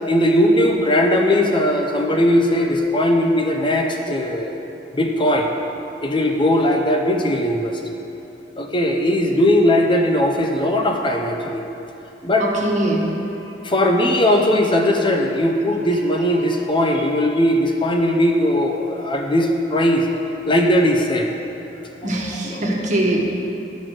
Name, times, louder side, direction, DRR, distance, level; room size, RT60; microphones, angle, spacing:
voice 1, 0.1-4.6 4.9-5.5 6.0-7.7 8.6-11.6 12.2-12.5 13.6-20.1 20.5-21.3 22.0-22.9, left 1 dB, 30° left, 2 dB, 0.7 m, -19 dB
voice 2, 12.6-13.1 22.0-23.2, right 1 dB, 45° right, -2 dB, 1.4 m, -21 dB
10.5 x 6.1 x 6.3 m, 2.9 s
head